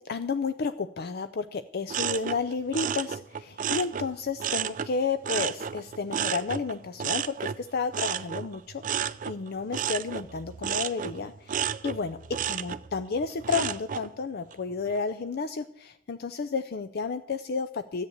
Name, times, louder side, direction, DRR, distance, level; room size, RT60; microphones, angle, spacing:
voice 1, 0.0-18.1, left 4 dB, 50° left, 11 dB, 0.5 m, -32 dB
sound 1, 1.9-4.9 5.2-14.1 14.5-15.0, right 8 dB, 40° right, 0.4 m, -32 dB
13.5 x 8.3 x 8.0 m, 0.78 s
head